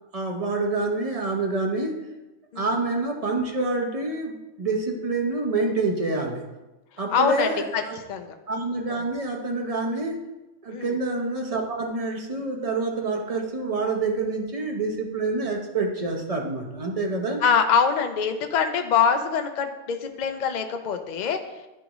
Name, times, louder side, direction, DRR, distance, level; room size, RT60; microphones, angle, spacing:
voice 1, 0.1-2.0 2.6-6.4 7.0-8.0 8.5-10.2 10.6-17.4, right 3 dB, 35° right, 2 dB, 0.8 m, -27 dB
voice 2, 7.1-7.8 8.1-8.3 10.7-10.9 17.4-21.4, left 6 dB, 50° left, 6 dB, 0.5 m, -24 dB
11.0 x 3.7 x 3.0 m, 1.0 s
omnidirectional pair, 1.3 m